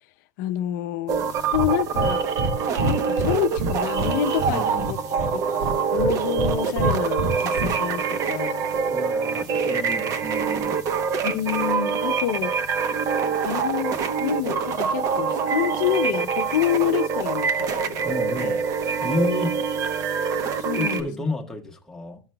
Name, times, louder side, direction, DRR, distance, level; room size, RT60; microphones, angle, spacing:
voice 1, 0.4-1.2 1.5-2.3 2.7-5.0 5.3-5.5 5.9-8.7 11.2-12.5 13.4-18.5 20.6-21.1, left 12 dB, 65° left, 0.6 m, -28 dB
sound 1, 1.1-21.0, right 6 dB, 30° right, 0.8 m, -25 dB
Breathing, 1.5-1.7 2.0-2.5 2.8-4.1 4.4-5.3 5.6-6.5 6.8-7.7, right 2 dB, 70° right, 1.5 m, -26 dB
voice 2, 4.5-4.9 8.9-10.8 18.0-18.6 19.0-19.6 20.7-22.2, left 2 dB, 5° left, 1.1 m, -31 dB
14.0 x 6.0 x 2.2 m
supercardioid pair, 170°, 11 cm